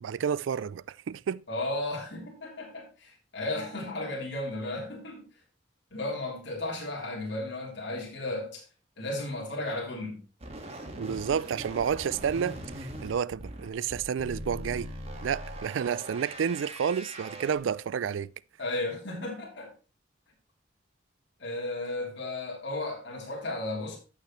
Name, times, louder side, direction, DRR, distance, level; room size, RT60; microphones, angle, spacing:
voice 1, 0.0-1.4 11.0-14.9 15.2-18.3, right 7 dB, 80° right, 0.4 m, -30 dB
voice 2, 1.5-5.2 5.9-8.6 9.0-10.2 18.6-19.7 21.4-24.0, left 2 dB, 65° left, 3.4 m, -34 dB
sound 1, 10.4-17.6, right 1 dB, 35° right, 1.8 m, -41 dB
14.5 x 6.6 x 3.1 m
head